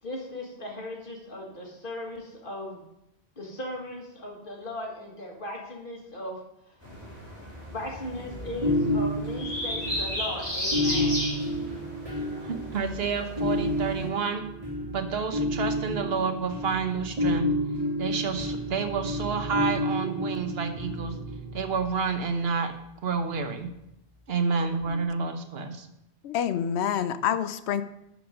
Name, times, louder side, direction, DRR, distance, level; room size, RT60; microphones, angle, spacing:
voice 1, 0.0-2.8 3.4-6.4 6.7-6.8 7.7-11.3, left 1 dB, 55° left, 0 dB, 2.0 m, -37 dB
City morning bird, 6.8-14.1, equal, 10° right, 4.0 m, -35 dB
sound 1, 8.3-22.0 24.8-25.0, left 1 dB, 30° right, 2.6 m, -30 dB
voice 2, 12.4-14.5 14.9-17.5 18.0-21.2 21.5-22.7 23.0-23.7 24.3-25.9, right 5 dB, 65° right, 6 dB, 1.2 m, -29 dB
voice 3, 26.2-27.8, left 9 dB, 80° left, 13 dB, 0.9 m, -27 dB
11.0 x 5.0 x 5.0 m, 0.82 s
omnidirectional pair, 1.1 m